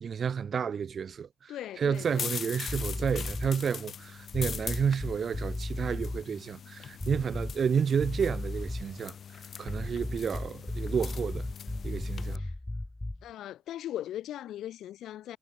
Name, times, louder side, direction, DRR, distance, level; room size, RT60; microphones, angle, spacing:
voice 1, 0.0-11.5 11.8-12.4, right 7 dB, 50° right, 0.7 m, -31 dB
voice 2, 1.5-2.3 12.4-12.5 13.2-15.4, left 12 dB, 80° left, 2.1 m, -39 dB
sound 1, 1.9-12.4, left 7 dB, 55° left, 1.7 m, -42 dB
sound 2, 2.7-3.6 4.3-6.2 7.0-7.7 8.0-9.0 9.6-13.3, left 2 dB, 15° left, 3.7 m, -35 dB
cardioid pair, 90°, 0 cm